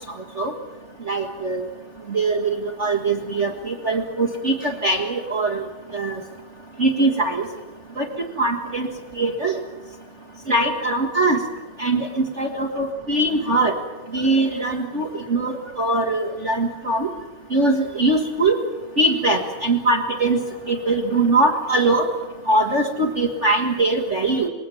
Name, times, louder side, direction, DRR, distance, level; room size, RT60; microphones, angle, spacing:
voice 1, 1.1-1.6 2.1-5.6 5.9-6.2 6.8-7.5 8.0-8.1 8.4-8.9 9.2-9.6 10.5-11.4 11.8-13.7 14.1-17.1 17.5-18.6 19.0-20.4 20.7-22.1 22.5-24.5, right 2 dB, 60° right, 1 dB, 0.7 m, -21 dB
26.0 x 21.0 x 7.2 m, 1.2 s
omnidirectional pair, 4.3 m